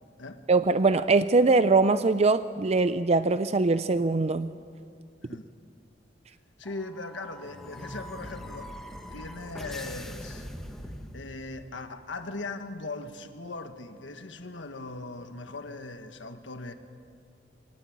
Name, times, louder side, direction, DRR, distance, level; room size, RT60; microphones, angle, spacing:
voice 1, 0.5-4.5, right 3 dB, 35° right, 0.5 m, -22 dB
voice 2, 6.6-8.7 9.1-10.5 11.1-16.7, left 3 dB, 75° left, 1.4 m, -39 dB
sound 1, 6.6-11.6, equal, ahead, 1.6 m, -42 dB
23.5 x 19.0 x 8.6 m
head